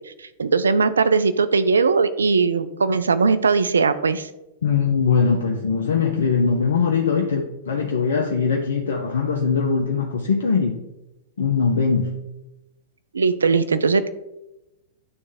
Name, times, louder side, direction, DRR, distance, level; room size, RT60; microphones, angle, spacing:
voice 1, 0.4-4.3 13.1-14.1, right 4 dB, 85° right, 13 dB, 0.4 m, -19 dB
voice 2, 4.6-10.8 11.4-12.2, left 5 dB, 75° left, 1 dB, 0.7 m, -21 dB
9.5 x 3.3 x 3.5 m, 0.94 s
hypercardioid pair, 110°, 0 cm